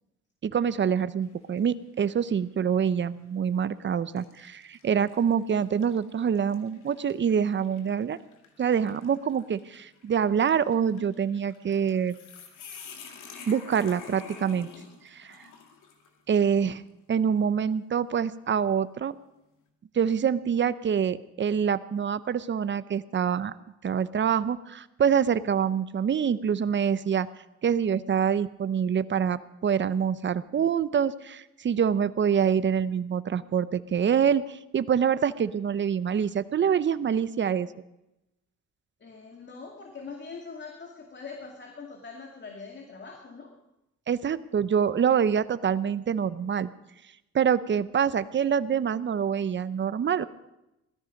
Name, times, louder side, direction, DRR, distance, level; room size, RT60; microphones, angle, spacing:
voice 1, 0.4-8.2 8.6-12.2 13.5-14.7 15.1-15.4 16.3-16.8 17.1-19.2 19.9-23.5 23.8-27.3 27.6-37.7 44.1-46.7 47.3-50.2, right 7 dB, 40° right, 15 dB, 0.8 m, -26 dB
sound 1, 1.2-1.7 2.2-2.4 3.3-3.5 4.2-16.2, left 6 dB, 85° left, 2.3 m, -49 dB
voice 2, 39.0-43.5, left 4 dB, 35° left, 2 dB, 2.3 m, -43 dB
17.5 x 13.5 x 5.3 m, 0.91 s
cardioid pair, 90°, 30 cm